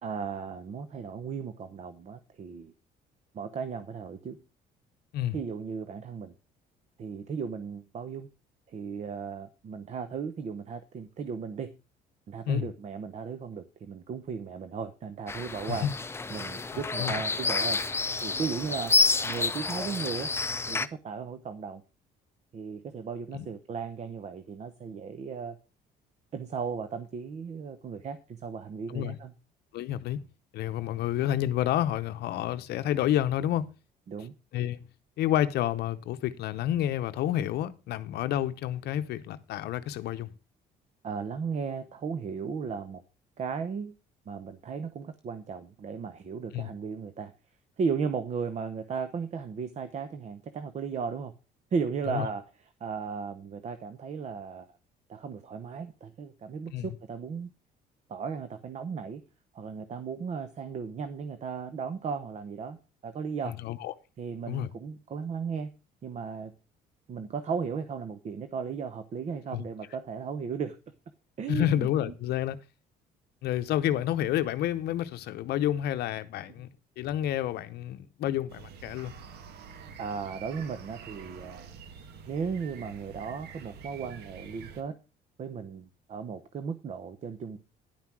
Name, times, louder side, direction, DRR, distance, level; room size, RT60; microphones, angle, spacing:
voice 1, 0.0-2.7 3.3-4.4 5.3-6.3 7.0-8.3 8.7-11.7 12.3-15.9 16.3-18.9 19.2-20.3 20.7-21.8 22.5-25.6 26.3-29.3 34.1-34.3 41.0-43.0 43.4-43.9 44.3-47.3 47.8-51.3 51.7-52.5 52.8-54.7 55.1-57.5 58.1-59.2 59.5-63.5 64.2-65.7 66.0-66.5 67.1-70.8 71.4-71.9 80.0-81.7 82.3-85.0 85.4-87.6, right 6 dB, 40° right, 0.9 m, -36 dB
sound 1, 15.3-20.9, left 4 dB, 15° left, 0.6 m, -29 dB
voice 2, 29.7-30.2 30.5-33.7 34.5-34.8 35.2-40.3 46.5-46.7 52.1-52.3 56.7-56.9 63.6-63.9 64.5-64.7 69.5-69.6 71.5-72.6 73.4-76.7 77.0-79.1, left 12 dB, 70° left, 0.7 m, -29 dB
sound 2, 78.5-84.8, right 6 dB, 75° right, 1.4 m, -47 dB
10.5 x 5.7 x 6.0 m
cardioid pair, 110°, 17 cm